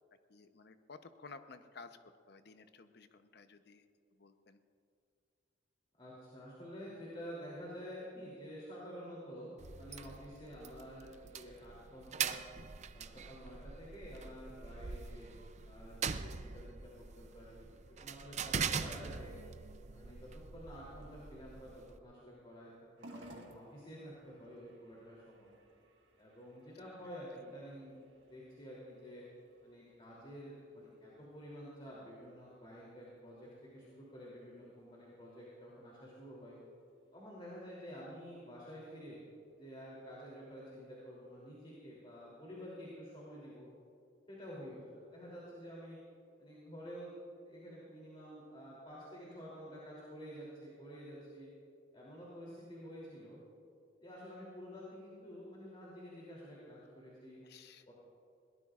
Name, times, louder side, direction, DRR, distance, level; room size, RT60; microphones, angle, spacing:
voice 1, 0.3-3.9 4.1-4.6 57.4-57.9, left 4 dB, 65° left, 9 dB, 0.8 m, -55 dB
voice 2, 6.0-9.5 9.8-12.4 12.9-15.3 15.6-19.4 19.9-22.7 23.0-25.5 26.2-29.2 29.6-36.6 37.1-39.2 39.6-43.7 44.3-46.0 46.4-47.1 47.4-51.5 51.9-53.4 54.0-57.4 57.8-57.9, equal, 30° left, -5 dB, 3.0 m, -50 dB
sound 1, 9.6-22.0, right 6 dB, 40° right, 0.5 m, -42 dB
sound 2, 23.0-41.6, right 1 dB, 75° right, 1.6 m, -63 dB
21.5 x 18.0 x 2.5 m, 2.5 s
head